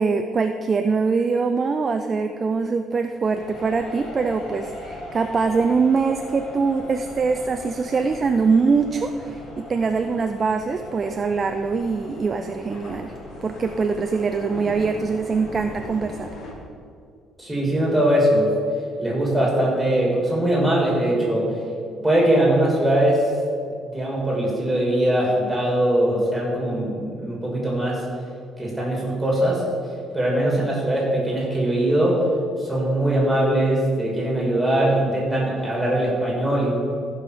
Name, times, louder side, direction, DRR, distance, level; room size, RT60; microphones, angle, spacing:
voice 1, 0.0-13.1 13.4-16.3, right 4 dB, 25° right, 6 dB, 0.3 m, -23 dB
sound 1, 3.2-16.5, left 2 dB, 55° left, 1.7 m, -39 dB
voice 2, 17.4-18.5 19.0-21.5 21.9-23.3 23.9-28.0 28.6-29.7 30.1-32.2 32.6-36.7, right 1 dB, 5° right, -4 dB, 2.7 m, -21 dB
14.5 x 5.4 x 4.9 m, 2.3 s
cardioid pair, 170°, 0 cm